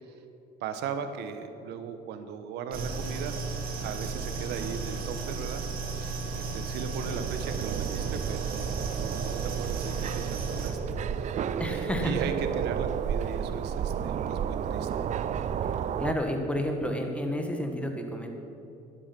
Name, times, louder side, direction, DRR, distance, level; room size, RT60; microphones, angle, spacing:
voice 1, 0.6-5.7 5.9-15.1, right 6 dB, 80° right, 8 dB, 1.1 m, -38 dB
sound 1, 2.7-10.7, right 4 dB, 60° right, 1.9 m, -34 dB
sound 2, 7.1-16.1, right 8 dB, 45° right, 0.5 m, -32 dB
voice 2, 11.6-12.1 16.0-18.3, left 1 dB, 5° left, 4 dB, 1.6 m, -30 dB
11.0 x 9.9 x 6.0 m, 2.9 s
cardioid pair, 110°, 17 cm